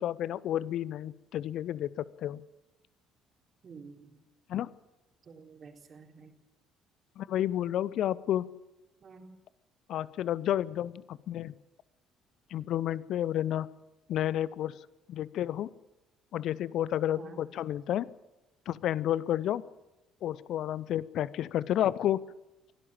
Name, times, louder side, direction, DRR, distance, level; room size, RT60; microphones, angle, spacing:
voice 1, 0.0-2.4 4.5-4.7 7.2-8.5 9.9-11.5 12.5-13.7 14.1-14.8 15.1-15.7 16.3-18.1 18.7-19.6 20.2-22.2, left 11 dB, 60° left, 20 dB, 0.8 m, -31 dB
voice 2, 3.6-4.2 5.3-6.3 9.0-9.3 17.1-17.4, right 5 dB, 40° right, 2 dB, 4.0 m, -49 dB
24.0 x 17.0 x 7.4 m, 0.97 s
figure-of-eight pair, 50°, 0 cm